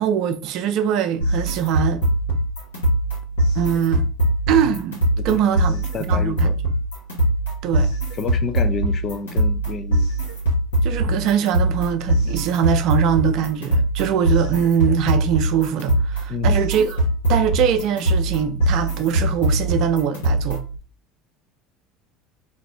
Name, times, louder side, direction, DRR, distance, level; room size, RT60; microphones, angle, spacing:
voice 1, 0.0-2.0 3.5-4.1 4.5-6.5 7.6-7.9 10.8-17.0 17.3-20.6, right 9 dB, 55° right, 0.5 m, -22 dB
sound 1, 1.2-20.8, right 1 dB, 80° left, 1.1 m, -22 dB
voice 2, 5.7-6.5 8.2-10.1 16.3-16.6, left 5 dB, 40° left, 0.4 m, -29 dB
2.5 x 2.4 x 3.4 m
figure-of-eight pair, 70°, 0 cm